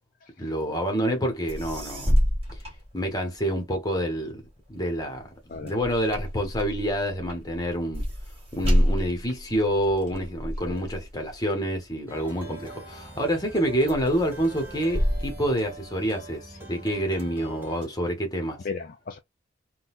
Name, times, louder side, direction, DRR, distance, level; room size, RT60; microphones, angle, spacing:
voice 1, 0.4-2.2 2.9-4.4 4.7-5.3 5.6-8.0 8.5-18.6, equal, 20° left, 1.0 m, -27 dB
sound 1, 1.2-1.3 1.5-3.6 4.0-12.7 13.2-13.6 13.9-16.4 16.8-17.8, equal, 30° right, 2.1 m, -29 dB
Plucked string instrument, 12.1-17.9, right 2 dB, 10° right, 1.0 m, -43 dB
voice 2, 18.6-19.2, left 4 dB, 45° left, 0.4 m, -36 dB
3.8 x 2.3 x 2.4 m
head